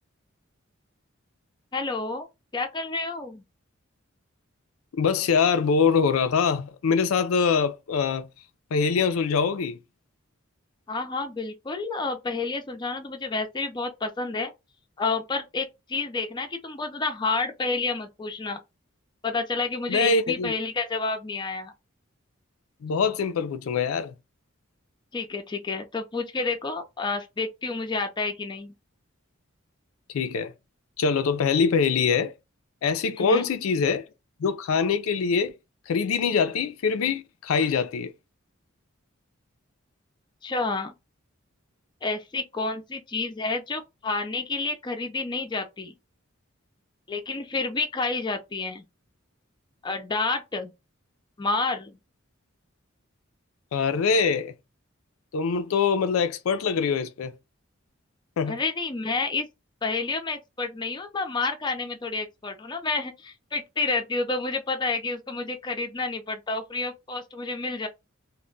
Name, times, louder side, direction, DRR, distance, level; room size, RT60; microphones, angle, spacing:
voice 1, 1.7-2.3 2.5-3.4 10.9-14.5 15.0-18.6 19.2-21.7 25.1-28.7 33.2-33.4 40.4-40.9 42.0-45.9 47.1-48.8 49.8-50.7 51.4-52.0 58.5-59.5 59.8-67.9, left 3 dB, 20° left, 0.4 m, -29 dB
voice 2, 4.9-8.3 8.7-9.8 19.9-20.5 22.8-24.1 30.1-30.5 31.0-32.3 32.8-34.1 34.4-35.5 35.9-38.1 53.7-54.5 55.3-57.3 58.4-58.6, left 5 dB, 85° left, 0.4 m, -24 dB
2.2 x 2.1 x 3.8 m
head